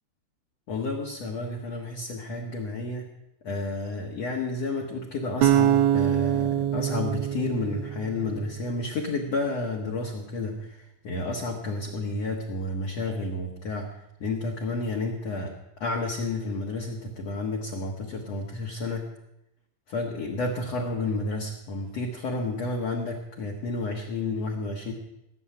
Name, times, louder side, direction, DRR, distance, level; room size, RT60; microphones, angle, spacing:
voice 1, 0.7-3.1 3.4-13.9 14.2-19.1 19.9-24.9, left 2 dB, 60° left, -1 dB, 1.7 m, -31 dB
sound 1, 5.4-8.6, right 11 dB, 80° right, 2.2 m, -24 dB
18.0 x 7.2 x 8.9 m, 0.86 s
omnidirectional pair, 5.1 m